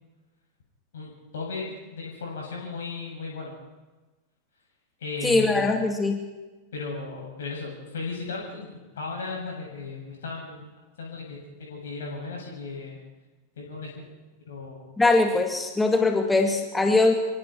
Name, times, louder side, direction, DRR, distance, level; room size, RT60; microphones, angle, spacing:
voice 1, 0.9-3.5 5.0-5.6 6.7-8.7 9.0-10.7 11.0-13.0 13.6-14.0 14.5-14.9, left 4 dB, 65° left, -1 dB, 7.5 m, -35 dB
voice 2, 5.2-6.2 15.0-17.1, left 2 dB, 10° left, 4 dB, 2.4 m, -21 dB
26.5 x 24.5 x 4.6 m, 1.2 s
figure-of-eight pair, 90°, 0 cm